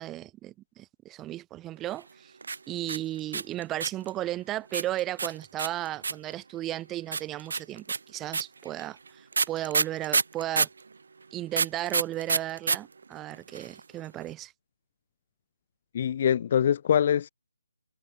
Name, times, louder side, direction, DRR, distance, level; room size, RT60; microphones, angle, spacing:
voice 1, 0.0-2.3 2.7-10.7 11.3-14.5, right 14 dB, 15° right, 7.1 m, -35 dB
sound 1, 2.4-4.1 4.7-6.3 7.1-10.8 11.5-12.8 13.0-13.1 13.3-13.8, right 4 dB, 65° right, 7.5 m, -27 dB
voice 2, 15.9-17.3, left 9 dB, 40° left, 1.0 m, -23 dB
figure-of-eight pair, 155°, 0 cm